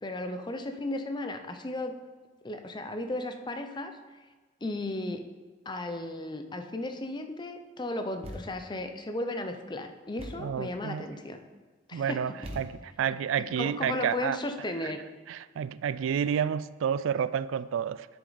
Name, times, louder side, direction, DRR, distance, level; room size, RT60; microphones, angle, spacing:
voice 1, 0.0-1.9 2.4-3.9 4.6-5.2 5.7-11.4 11.9-12.4 13.4-15.0, left 2 dB, 25° left, 7 dB, 0.6 m, -35 dB
Thump thud, 8.2-8.8 10.2-10.6 12.4-13.1, equal, 30° right, 1.1 m, -43 dB
voice 2, 10.4-11.0 11.9-14.4 15.3-18.1, right 8 dB, 85° right, 16 dB, 0.3 m, -30 dB
10.5 x 6.7 x 4.0 m, 1.3 s
head